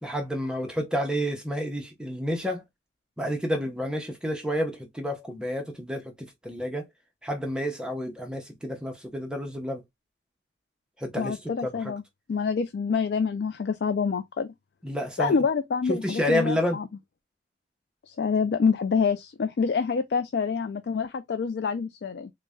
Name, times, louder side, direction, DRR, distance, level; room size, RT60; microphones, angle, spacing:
voice 1, 0.0-2.6 3.2-6.9 7.2-9.8 11.0-11.9 14.8-15.4 15.9-16.8, equal, 5° right, 0.6 m, -30 dB
voice 2, 11.2-12.0 12.3-14.5 15.2-16.9 18.1-22.3, left 5 dB, 70° left, 0.3 m, -26 dB
3.8 x 2.1 x 3.5 m
head